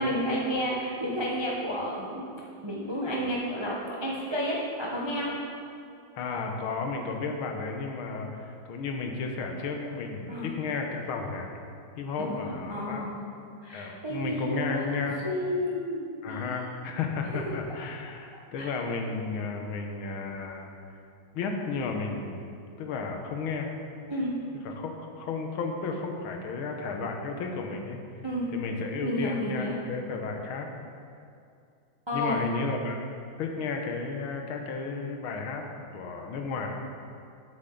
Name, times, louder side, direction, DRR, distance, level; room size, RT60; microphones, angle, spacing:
voice 1, 0.0-2.3 2.6-5.3 10.3-10.5 12.2-13.2 13.6-16.4 18.6-18.7 24.1-24.3 28.2-28.5 29.0-29.7 32.1-32.5, equal, 40° right, -4 dB, 0.3 m, -31 dB
voice 2, 6.1-11.5 12.0-13.1 13.7-15.2 16.2-20.7 21.3-23.7 24.6-28.0 28.5-30.7 32.1-33.0 33.4-35.6 35.9-36.7, left 4 dB, 85° left, 3 dB, 1.7 m, -33 dB
8.9 x 7.6 x 3.8 m, 2.4 s
omnidirectional pair, 2.2 m